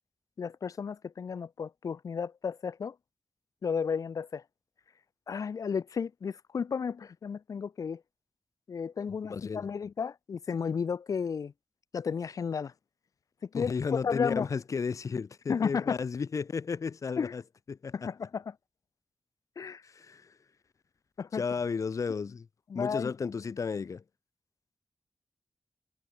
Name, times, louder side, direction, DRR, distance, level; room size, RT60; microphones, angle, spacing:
voice 1, 0.4-2.9 3.6-4.4 5.3-8.0 8.7-11.5 11.9-12.7 13.4-13.7 14.0-14.5 15.5-16.0 17.2-17.3 17.9-18.5 19.6-19.8 21.2-21.4 22.7-23.1, left 6 dB, 85° left, 1.4 m, -33 dB
voice 2, 9.3-9.7 13.5-17.4 17.7-18.1 19.8-20.4 21.3-22.5 22.7-24.0, left 5 dB, 70° left, 2.7 m, -33 dB
wide cardioid pair, 125°, 6 cm